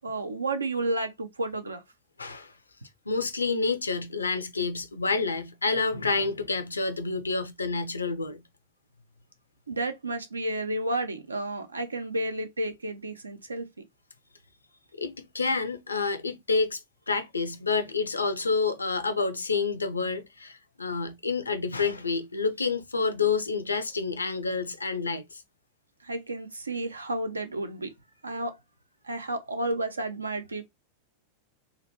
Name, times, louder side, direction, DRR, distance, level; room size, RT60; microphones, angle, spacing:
voice 1, 0.0-1.8 9.7-13.7 26.0-27.9 28.2-28.6 29.0-30.6, right 2 dB, 80° right, 0.5 m, -31 dB
voice 2, 2.2-2.5 3.1-8.4 15.0-16.8 17.1-25.4, left 4 dB, 80° left, 0.5 m, -28 dB
2.8 x 2.1 x 2.9 m
figure-of-eight pair, 90°, 0 cm